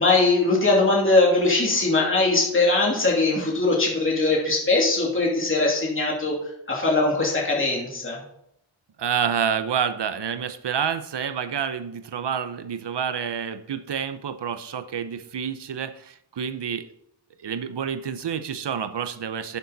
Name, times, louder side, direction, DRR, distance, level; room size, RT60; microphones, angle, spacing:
voice 1, 0.0-6.4 6.7-8.2, left 2 dB, 25° left, -3 dB, 2.7 m, -21 dB
voice 2, 9.0-16.9 17.4-19.6, right 7 dB, 60° right, 11 dB, 0.9 m, -28 dB
10.5 x 7.0 x 4.1 m, 0.75 s
wide cardioid pair, 80°, 48 cm